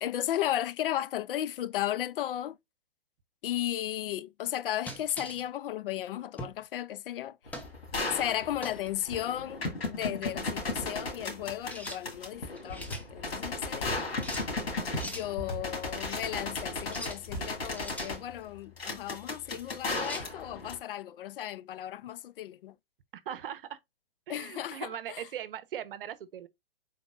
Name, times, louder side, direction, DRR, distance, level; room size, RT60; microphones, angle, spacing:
voice 1, 0.0-2.6 3.4-7.4 8.1-14.1 15.0-22.7 24.3-25.2, left 12 dB, 65° left, 0.4 m, -35 dB
sound 1, 4.9-5.4 6.4-6.6 7.5-7.7 8.6-8.9 11.7-12.0 12.5-13.1 14.2-14.5 15.0-15.3 16.8-17.2 17.7-18.2 20.0-20.3, equal, 5° left, 0.7 m, -41 dB
sound 2, 7.5-20.8, left 3 dB, 85° left, 2.0 m, -36 dB
sound 3, 12.9-13.1 13.9-14.1 15.0-15.1 15.5-15.7 17.3-17.5, equal, 35° left, 2.1 m, -38 dB
voice 2, 23.2-23.8 24.3-26.5, right 10 dB, 65° right, 0.8 m, -40 dB
5.1 x 4.0 x 2.4 m
hypercardioid pair, 130°, 30 cm